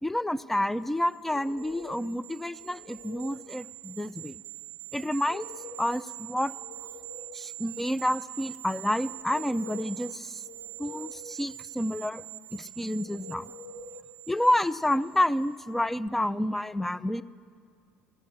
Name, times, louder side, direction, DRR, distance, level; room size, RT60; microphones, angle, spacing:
voice 1, 0.0-4.4 4.9-5.5 5.8-6.5 7.3-10.4 10.8-12.2 12.5-13.5 14.3-17.2, left 1 dB, 5° left, 17 dB, 0.3 m, -29 dB
sound 1, 1.0-15.6 15.9-16.1, right 18 dB, 75° right, 0.4 m, -44 dB
sound 2, 1.3-2.1 2.6-3.5 5.1-6.1 6.4-7.5 9.0-10.0 10.4-11.4 13.0-14.1, left 3 dB, 30° left, 1.0 m, -47 dB
15.0 x 8.2 x 9.9 m, 2.3 s
hypercardioid pair, 65°, 5 cm